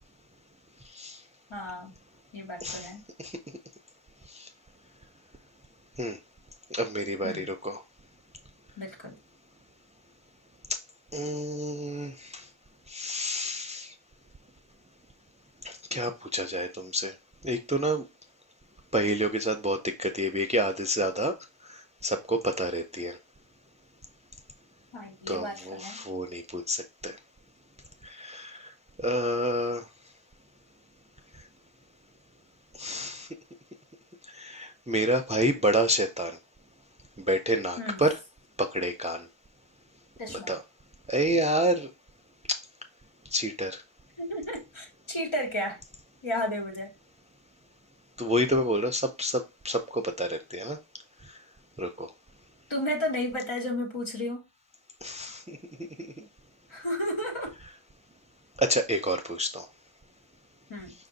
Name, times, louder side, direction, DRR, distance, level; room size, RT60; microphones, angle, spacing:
voice 1, 1.5-1.9 2.3-3.0 7.2-7.5 8.8-9.1 24.9-26.0 37.8-38.1 40.2-40.5 44.2-45.8 46.2-46.9 52.7-54.4 56.7-57.5 60.7-60.9, left 1 dB, 90° left, 1.5 m, -33 dB
voice 2, 6.7-7.8 11.1-12.4 12.9-13.9 15.6-17.1 17.4-18.0 18.9-21.3 21.7-23.2 25.3-27.2 28.0-28.7 29.0-29.9 32.8-33.3 34.3-36.4 37.3-38.2 38.6-39.3 40.5-40.6 41.1-41.9 42.5-42.6 43.3-43.8 48.2-50.8 51.8-52.1 55.0-55.6 58.6-59.7, equal, 15° right, 0.4 m, -29 dB
5.2 x 2.5 x 3.8 m
wide cardioid pair, 70°, 47 cm